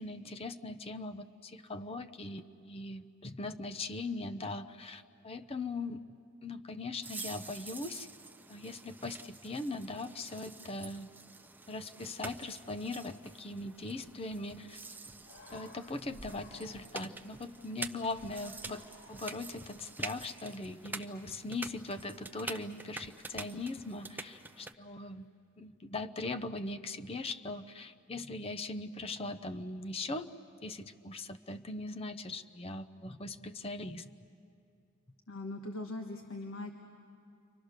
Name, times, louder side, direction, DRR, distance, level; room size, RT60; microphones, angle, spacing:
voice 1, 0.0-6.0 6.4-8.1 8.5-11.1 11.7-14.8 15.5-25.3 25.6-30.3 30.6-34.1, left 2 dB, 30° left, 9 dB, 0.6 m, -40 dB
sound 1, 7.0-24.7, right 3 dB, 10° right, 0.6 m, -47 dB
Human voice, 14.8-14.9 15.1-17.2 18.1-19.8, left 1 dB, 65° left, 2.3 m, -55 dB
voice 2, 35.3-36.7, left 2 dB, 85° left, 4 dB, 1.4 m, -40 dB
30.0 x 24.5 x 6.6 m, 2.4 s
head